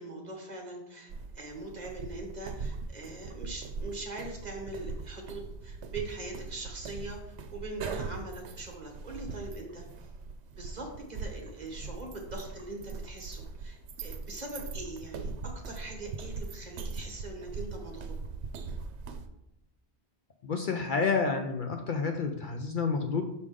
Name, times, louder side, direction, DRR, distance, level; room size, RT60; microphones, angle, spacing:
voice 1, 0.0-9.8 10.6-18.1, right 2 dB, 40° right, 1 dB, 1.2 m, -42 dB
sound 1, 1.1-19.3, right 4 dB, 85° right, 0.9 m, -41 dB
voice 2, 20.4-23.2, left 5 dB, 55° left, 5 dB, 0.6 m, -29 dB
6.3 x 4.9 x 3.7 m, 0.85 s
omnidirectional pair, 1.1 m